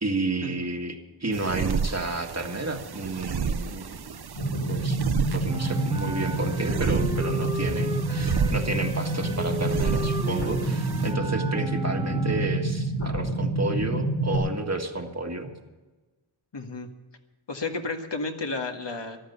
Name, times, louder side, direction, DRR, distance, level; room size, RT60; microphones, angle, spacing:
voice 1, 0.0-4.2 4.7-15.5, right 2 dB, 35° right, 4 dB, 1.8 m, -31 dB
sound 1, 1.3-11.1, right 6 dB, 55° right, 0.7 m, -32 dB
sound 2, 4.4-14.4, right 2 dB, 80° left, 4.9 m, -28 dB
Wind instrument woodwind instrument, 5.4-12.8, equal, 10° right, 1.4 m, -36 dB
voice 2, 16.5-16.9 17.5-19.3, left 3 dB, 65° left, 4 dB, 1.6 m, -32 dB
14.0 x 12.5 x 6.8 m, 1.2 s
wide cardioid pair, 70°, 46 cm